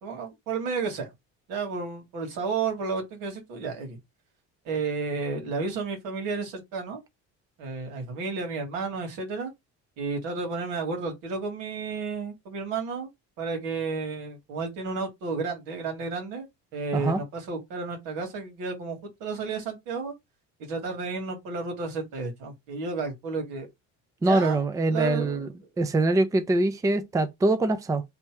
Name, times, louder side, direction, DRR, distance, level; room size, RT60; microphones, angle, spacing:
voice 1, 0.0-1.1 1.5-4.0 4.7-7.0 7.6-9.5 10.0-13.1 13.4-16.5 16.7-20.1 20.6-23.7 24.2-24.6 24.9-25.4, right 4 dB, 85° right, 2.0 m, -32 dB
voice 2, 24.2-25.5 25.8-28.0, right 2 dB, 10° right, 0.5 m, -23 dB
3.4 x 2.7 x 4.6 m
cardioid pair, 145°, 31 cm